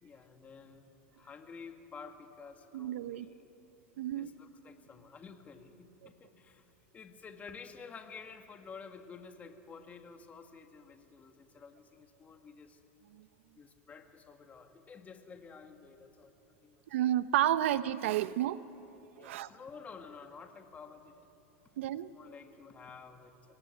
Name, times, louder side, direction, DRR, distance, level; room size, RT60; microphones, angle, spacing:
voice 1, 0.0-3.3 4.1-12.8 13.5-16.3 16.6-16.8 19.2-21.3 22.1-23.3, left 5 dB, 20° left, 5 dB, 2.1 m, -51 dB
voice 2, 2.7-3.3 4.0-4.3 13.1-13.3 16.9-18.6 19.2-19.5 21.8-22.1, right 12 dB, 75° right, 14 dB, 0.7 m, -31 dB
25.0 x 19.0 x 9.5 m, 2.9 s
supercardioid pair, 125°, 7 cm